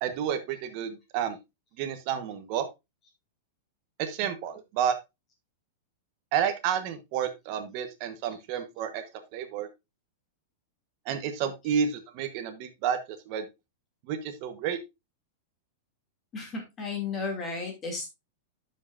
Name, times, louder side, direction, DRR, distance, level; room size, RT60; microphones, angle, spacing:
voice 1, 0.0-1.4 1.8-2.7 4.0-5.0 6.3-9.1 9.3-9.7 11.0-13.4 14.1-14.8, right 8 dB, 35° right, 7 dB, 1.2 m, -30 dB
voice 2, 16.3-18.1, left 4 dB, 20° left, 1 dB, 2.5 m, -34 dB
12.0 x 5.6 x 2.6 m, 0.22 s
supercardioid pair, 175°, 0 cm